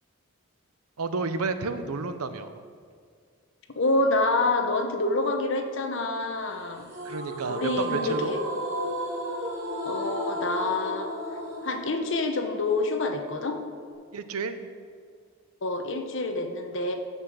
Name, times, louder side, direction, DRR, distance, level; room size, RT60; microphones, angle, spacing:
voice 1, 1.0-2.6 7.0-8.4 14.1-14.6, right 3 dB, 80° right, 10 dB, 0.7 m, -31 dB
voice 2, 3.7-6.9 7.5-8.4 9.8-11.1 11.6-13.6 15.6-16.9, left 2 dB, 55° left, 5 dB, 1.0 m, -27 dB
sound 1, 6.9-13.9, right 1 dB, 60° right, 2.9 m, -34 dB
14.0 x 5.5 x 6.4 m, 2.1 s
head